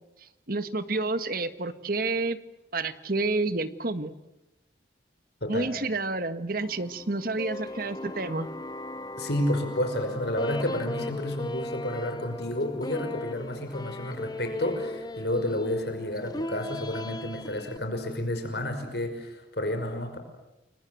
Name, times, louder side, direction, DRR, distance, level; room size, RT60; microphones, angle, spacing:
voice 1, 0.2-2.4 2.7-4.1 5.5-8.5, right 3 dB, 55° right, 11 dB, 1.7 m, -29 dB
sound 1, 6.6-17.8, left 1 dB, 20° left, 1.1 m, -38 dB
voice 2, 9.2-20.2, left 1 dB, 65° left, 6 dB, 5.6 m, -30 dB
29.5 x 23.5 x 7.8 m, 0.93 s
head